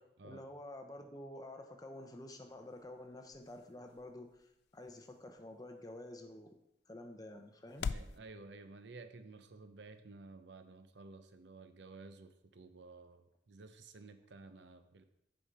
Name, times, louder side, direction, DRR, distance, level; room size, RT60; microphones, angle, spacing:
voice 1, 0.0-6.5 6.9-7.9, left 1 dB, 20° left, 4 dB, 0.8 m, -50 dB
sound 1, 1.9-8.2, left 5 dB, 60° left, 0.3 m, -48 dB
voice 2, 7.8-15.0, right 3 dB, 75° right, 9 dB, 0.6 m, -53 dB
7.1 x 5.4 x 4.7 m, 0.82 s
head